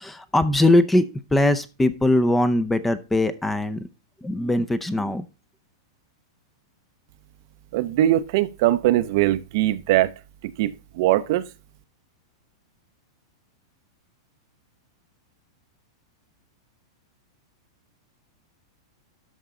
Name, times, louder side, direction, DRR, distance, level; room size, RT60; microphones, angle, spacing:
voice 1, 0.0-3.9 4.2-5.3, left 1 dB, 5° left, 0.7 m, -21 dB
voice 2, 7.7-10.1 10.6-11.5, right 14 dB, 55° right, 0.7 m, -21 dB
13.0 x 4.6 x 3.7 m
supercardioid pair, 145°, 2 cm